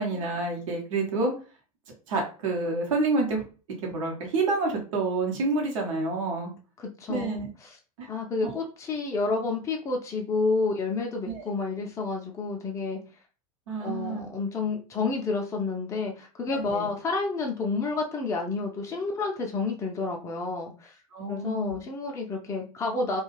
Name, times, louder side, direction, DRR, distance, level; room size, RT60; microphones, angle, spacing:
voice 1, 0.0-1.3 2.1-3.5 3.8-6.5 7.1-7.5 8.0-8.1 8.4-8.6 11.2-11.5 13.7-14.2 16.5-16.9 21.1-21.8, right 3 dB, 60° right, 0 dB, 0.9 m, -28 dB
voice 2, 6.8-7.8 8.1-13.0 13.8-20.9 21.3-23.2, left 3 dB, 15° left, 1 dB, 0.5 m, -30 dB
2.3 x 2.3 x 3.1 m, 0.36 s
figure-of-eight pair, 85°, 19 cm